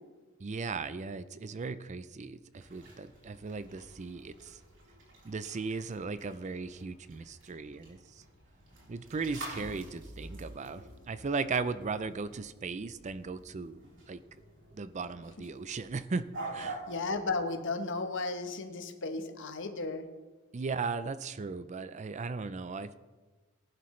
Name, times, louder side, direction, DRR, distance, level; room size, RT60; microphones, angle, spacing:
voice 1, 0.4-4.6 5.2-8.2 8.9-14.2 14.7-16.3 16.5-16.8 20.5-22.9, right 4 dB, 35° right, 13 dB, 0.4 m, -37 dB
sound 1, 2.5-17.0, right 2 dB, 60° right, 3.9 m, -48 dB
voice 2, 16.9-20.1, left 3 dB, 60° left, 7 dB, 1.1 m, -34 dB
18.5 x 11.0 x 3.2 m, 1.3 s
head